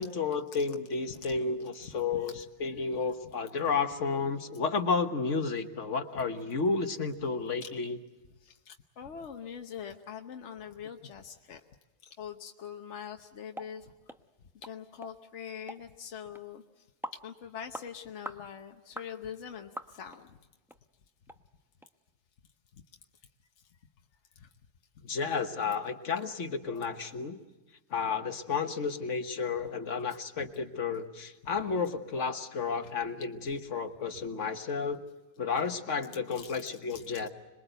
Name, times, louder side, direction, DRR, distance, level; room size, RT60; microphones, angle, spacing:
voice 1, 0.0-8.0 25.0-27.4 27.9-35.0 35.4-37.3, left 5 dB, 90° left, 6 dB, 1.7 m, -32 dB
voice 2, 2.1-2.4 7.6-7.7 8.4-11.6 12.1-13.9 14.6-16.6 17.2-20.4 24.4-24.5 32.8-32.9 36.4-37.2, left 8 dB, 75° left, 4 dB, 1.3 m, -44 dB
sound 1, 13.6-13.7 14.1-14.2 14.6-14.8 15.0-15.1 15.7-15.8 16.4-16.5 17.0-17.2 17.7-17.9 18.3-18.4 19.0-19.1 19.8-20.2 20.7-20.8 21.3-21.4 21.8-21.9, equal, ahead, 0.6 m, -42 dB
26.5 x 21.5 x 8.1 m, 1.1 s
omnidirectional pair, 1.2 m